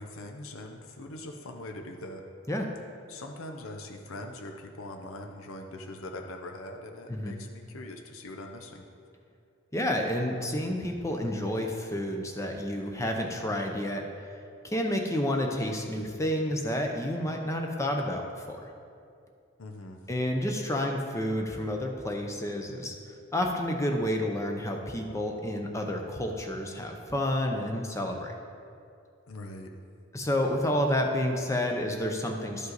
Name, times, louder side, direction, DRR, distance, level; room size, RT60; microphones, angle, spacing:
voice 1, 0.0-2.2 3.1-8.9 19.6-20.0 29.3-29.7, left 1 dB, 90° left, 4 dB, 0.7 m, -42 dB
voice 2, 9.7-14.1 14.6-18.7 20.1-22.9 23.3-28.3 30.1-32.7, left 1 dB, 15° left, 3 dB, 0.6 m, -30 dB
11.5 x 5.3 x 4.0 m, 2.4 s
head